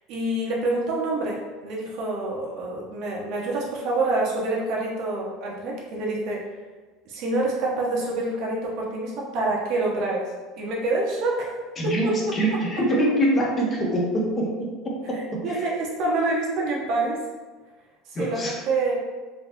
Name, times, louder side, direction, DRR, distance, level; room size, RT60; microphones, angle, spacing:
voice 1, 0.1-6.4 7.1-10.3 10.6-11.5 11.8-12.1 15.4-17.2 18.2-19.0, right 2 dB, 55° right, -3 dB, 0.8 m, -26 dB
voice 2, 11.8-15.7 18.1-18.6, right 1 dB, 25° left, -1 dB, 0.6 m, -25 dB
3.4 x 2.8 x 2.8 m, 1.3 s
cardioid pair, 150°, 0 cm